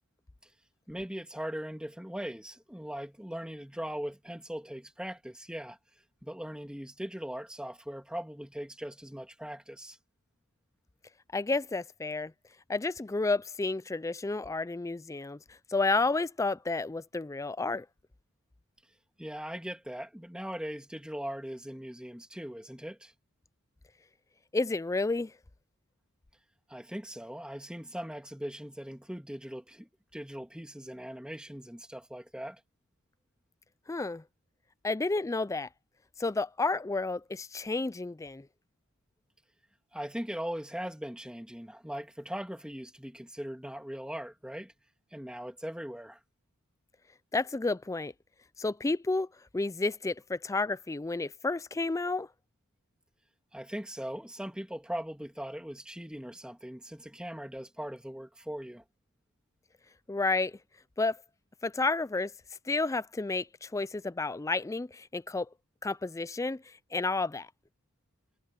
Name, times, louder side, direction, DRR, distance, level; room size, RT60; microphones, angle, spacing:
voice 1, 0.9-5.8 6.2-10.0 19.2-23.1 26.7-32.6 39.9-44.7 45.1-46.2 53.5-58.8, equal, 5° right, 2.8 m, -40 dB
voice 2, 11.3-12.3 12.7-15.4 15.7-17.9 24.5-25.3 33.9-34.2 34.8-35.7 36.2-38.5 47.3-48.1 48.6-49.3 49.5-52.3 60.1-60.6 61.0-61.2 61.6-62.3 62.7-65.5 65.8-67.5, left 3 dB, 15° left, 0.4 m, -31 dB
head